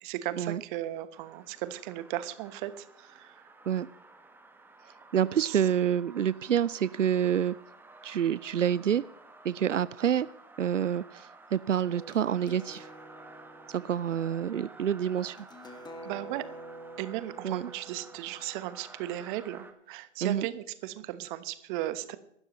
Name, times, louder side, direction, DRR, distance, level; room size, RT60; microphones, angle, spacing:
voice 1, 0.0-3.3 5.4-5.6 16.0-16.4 17.0-22.2, right 14 dB, 40° right, 13 dB, 1.2 m, -36 dB
sound 1, 1.1-19.7, right 3 dB, 5° right, 1.4 m, -53 dB
voice 2, 5.1-7.5 8.0-9.0 9.4-10.3 10.6-12.9 13.7-15.4 17.4-17.7 20.2-20.5, right 9 dB, 90° right, 19 dB, 0.5 m, -27 dB
sound 2, 11.9-19.6, right 1 dB, 10° left, 1.7 m, -49 dB
23.5 x 12.5 x 3.1 m, 0.72 s
figure-of-eight pair, 110°, 36 cm